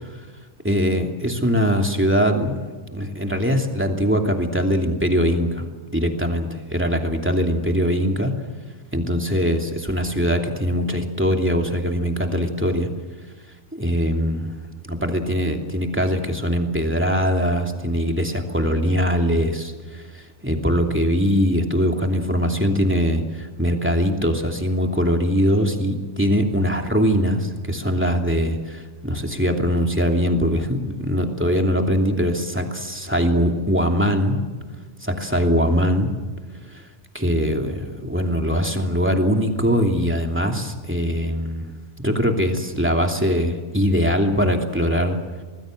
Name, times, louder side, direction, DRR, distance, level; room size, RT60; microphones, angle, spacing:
voice 1, 0.6-2.7 2.9-5.7 5.9-8.3 8.9-12.9 13.7-14.5 14.9-34.4 35.0-36.1 36.7-36.8 37.1-41.7 42.0-45.2, equal, 10° right, 3 dB, 2.9 m, -22 dB
26.0 x 20.0 x 7.8 m, 1.4 s
omnidirectional pair, 1.2 m